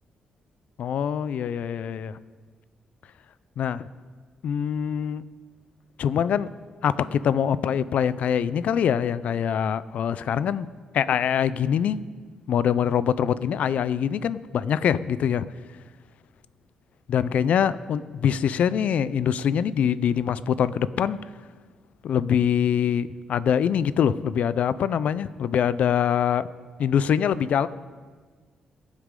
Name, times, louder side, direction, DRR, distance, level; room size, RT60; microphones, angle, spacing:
voice 1, 0.8-2.2 3.6-3.9 4.4-5.2 6.0-6.5 6.8-10.7 10.9-12.0 12.5-15.5 17.1-21.2 22.0-26.5 26.8-27.7, left 8 dB, 70° left, 16 dB, 0.5 m, -24 dB
22.0 x 8.2 x 3.8 m, 1.5 s
cardioid pair, 95°, 2 cm